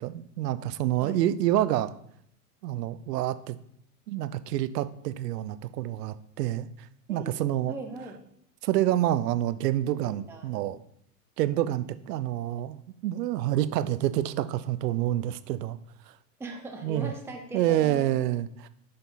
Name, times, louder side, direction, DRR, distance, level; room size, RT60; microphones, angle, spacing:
voice 1, 0.0-1.9 2.6-3.6 4.1-7.7 8.6-10.8 11.4-15.8 16.1-16.2 16.8-17.1 17.5-18.7, right 13 dB, 75° right, 14 dB, 0.7 m, -28 dB
voice 2, 7.1-8.2 10.0-10.5 16.4-18.2, right 2 dB, 5° right, 2 dB, 0.8 m, -40 dB
8.4 x 5.2 x 3.9 m, 0.70 s
hypercardioid pair, 110°, 49 cm